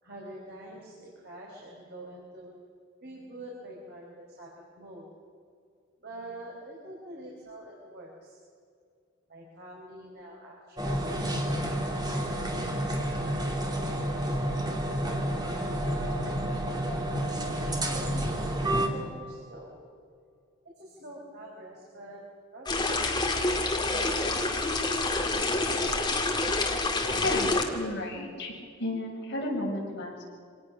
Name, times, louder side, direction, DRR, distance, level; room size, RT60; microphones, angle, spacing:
voice 1, 0.0-2.5 3.0-5.1 6.0-8.4 9.3-11.5 11.8-12.6 13.9-16.4 17.3-19.8 20.8-22.2 22.5-23.3 28.7-28.8, right 1 dB, 55° right, -3 dB, 4.6 m, -46 dB
sound 1, 10.8-18.9, right 1 dB, 20° right, 2.9 m, -30 dB
sound 2, 22.7-27.6, left 2 dB, 20° left, 2.3 m, -27 dB
voice 2, 27.2-28.5 28.8-30.3, left 1 dB, 55° left, -3 dB, 6.9 m, -32 dB
26.0 x 19.0 x 6.4 m, 2.3 s
head